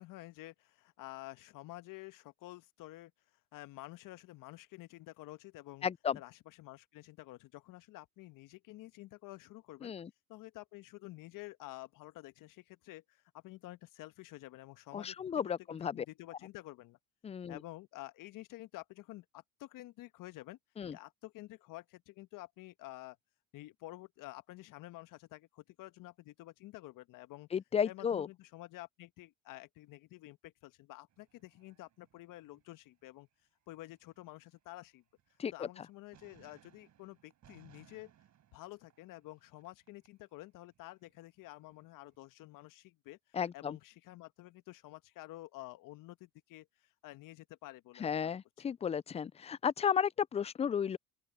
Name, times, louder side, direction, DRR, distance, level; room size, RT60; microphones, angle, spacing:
voice 1, 0.0-3.1 3.5-5.9 6.1-9.9 10.3-17.0 17.5-20.6 20.9-23.2 23.5-27.5 27.8-33.3 33.7-35.0 35.5-38.1 38.5-48.4, left 18 dB, 60° left, 1.4 m, -50 dB
voice 2, 5.8-6.2 9.8-10.1 14.9-16.0 17.2-17.6 20.8-21.0 27.5-28.3 35.4-35.7 43.3-43.8 48.0-51.0, left 7 dB, 20° left, 0.4 m, -33 dB
sound 1, 31.1-33.2 33.5-35.9 36.1-40.1 40.4-42.2, right 11 dB, 50° right, 4.4 m, -66 dB
open air
hypercardioid pair, 75°, 37 cm